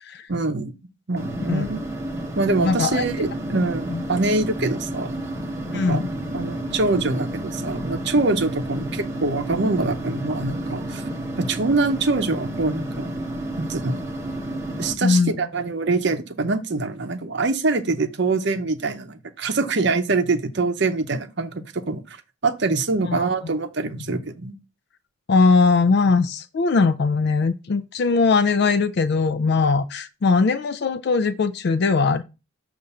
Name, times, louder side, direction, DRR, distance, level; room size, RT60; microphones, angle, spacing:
voice 1, 0.3-0.7 1.1-1.8 2.4-5.1 5.7-6.0 6.3-11.0 11.4-13.1 13.6-14.0 14.8-22.2 22.4-24.5, right 3 dB, 55° right, 0.7 m, -24 dB
sound 1, 1.2-14.9, right 1 dB, 15° right, 0.9 m, -31 dB
voice 2, 2.6-3.0 3.9-4.0 5.7-6.1 15.0-15.4 23.0-23.3 24.0-24.1 25.3-32.2, left 4 dB, 50° left, 0.3 m, -20 dB
6.9 x 2.5 x 5.3 m
head